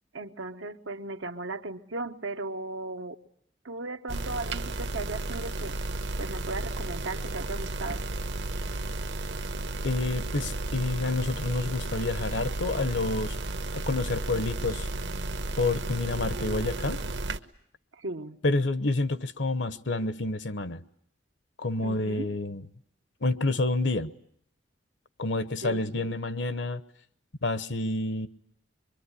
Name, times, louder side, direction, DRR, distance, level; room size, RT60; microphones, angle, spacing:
voice 1, 0.1-3.2 3.6-5.8 6.2-8.0 17.9-18.4 21.8-22.3 25.6-26.1, right 2 dB, 85° right, 1.3 m, -37 dB
sound 1, 4.1-17.4, right 2 dB, 65° right, 1.2 m, -33 dB
voice 2, 9.8-13.4 13.7-14.9 15.6-17.0 18.4-20.8 21.6-22.6 23.2-24.1 25.2-26.8 27.4-28.3, left 2 dB, 70° left, 1.0 m, -28 dB
24.0 x 23.5 x 9.9 m
head